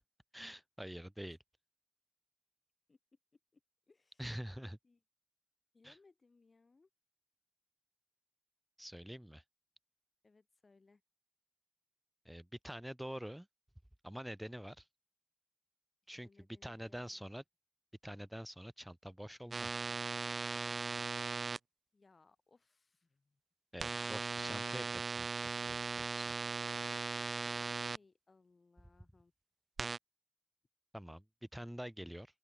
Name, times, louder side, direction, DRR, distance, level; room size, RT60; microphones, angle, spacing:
voice 1, 0.3-1.4 4.2-4.8 5.8-5.9 8.8-9.4 12.2-13.5 14.0-14.8 16.1-16.3 16.6-17.4 18.0-19.8 23.7-25.3 30.9-31.2 31.5-32.3, equal, 5° right, 2.8 m, -46 dB
voice 2, 2.9-3.6 3.9-4.3 4.8-5.0 5.7-6.9 10.2-11.0 16.0-17.3 21.9-23.4 27.9-29.3, left 3 dB, 55° left, 5.4 m, -68 dB
sound 1, 19.5-21.6 23.8-28.0 29.8-30.0, right 4 dB, 75° right, 0.4 m, -38 dB
open air
wide cardioid pair, 70°, 0 cm